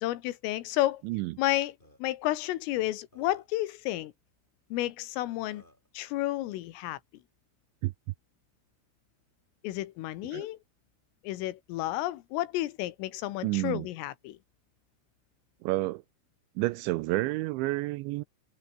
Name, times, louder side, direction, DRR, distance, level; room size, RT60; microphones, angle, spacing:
voice 1, 0.0-1.0 1.4-1.8 2.0-4.1 4.7-5.6 6.0-7.0 9.6-10.6 11.2-14.4, left 15 dB, 90° left, 4.0 m, -31 dB
voice 2, 1.0-1.3 7.8-7.9 10.3-10.5 13.4-13.9 15.6-16.0 16.6-18.2, right 20 dB, 85° right, 2.7 m, -30 dB
Burping eructation, 1.5-1.6 1.8-2.0 2.8-2.9 3.1-3.6 5.0-5.1 5.5-5.9, left 1 dB, 10° left, 7.9 m, -58 dB
omnidirectional pair, 5.7 m